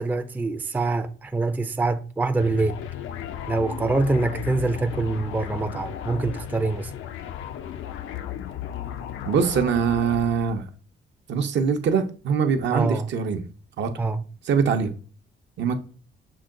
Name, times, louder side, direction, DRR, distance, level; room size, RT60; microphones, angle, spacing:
voice 1, 0.0-2.8 3.5-6.9 12.7-13.1 14.0-14.2, right 3 dB, 10° right, 0.4 m, -25 dB
sound 1, 2.4-10.6, left 10 dB, 80° left, 0.5 m, -35 dB
voice 2, 9.3-10.6 11.3-13.4 13.8-13.9 14.5-14.9 15.6-15.7, right 6 dB, 65° right, 0.7 m, -23 dB
6.3 x 2.2 x 3.7 m
cardioid pair, 90°, 20 cm